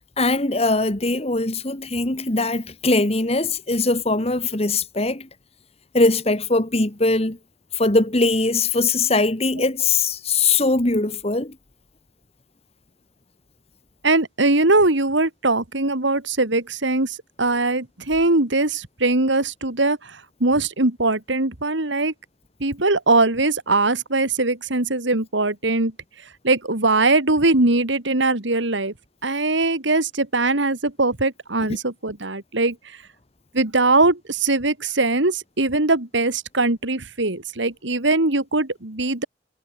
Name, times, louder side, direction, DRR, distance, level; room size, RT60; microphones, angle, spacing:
voice 1, 0.2-5.3 5.9-7.4 7.7-11.6, left 3 dB, 30° left, 1.8 m, -21 dB
voice 2, 14.0-22.1 22.6-25.9 26.4-28.9 29.2-32.8 33.5-39.2, right 2 dB, 70° right, 2.3 m, -21 dB
head